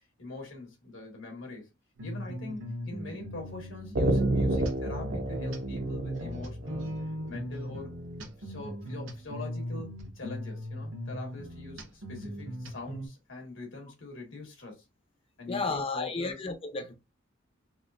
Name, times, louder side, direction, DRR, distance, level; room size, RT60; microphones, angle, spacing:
voice 1, 0.0-1.7 2.0-6.9 7.3-7.9 8.4-14.8 15.4-16.4, left 2 dB, 80° left, 1.8 m, -43 dB
sound 1, 2.0-13.1, equal, 80° right, 1.0 m, -39 dB
sound 2, 3.9-7.5, right 1 dB, 60° right, 0.6 m, -29 dB
voice 2, 15.5-16.9, left 3 dB, 30° left, 0.5 m, -33 dB
4.2 x 2.5 x 2.5 m
head